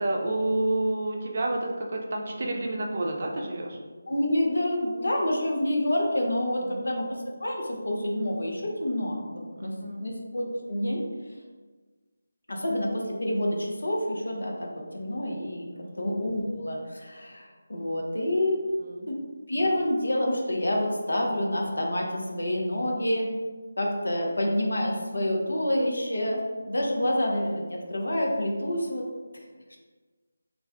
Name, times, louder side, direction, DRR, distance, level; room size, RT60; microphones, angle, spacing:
voice 1, 0.0-3.8 6.6-6.8 9.6-10.1 15.7-16.0 18.8-19.1, right 1 dB, 45° right, 0 dB, 0.5 m, -29 dB
voice 2, 4.1-9.7 10.0-11.0 12.5-15.7 16.0-18.6 19.1-19.2 19.5-23.3 23.8-29.1 29.7-29.8, left 1 dB, 85° left, -1 dB, 0.7 m, -28 dB
2.4 x 2.2 x 3.5 m, 1.3 s
figure-of-eight pair, 165°, 0 cm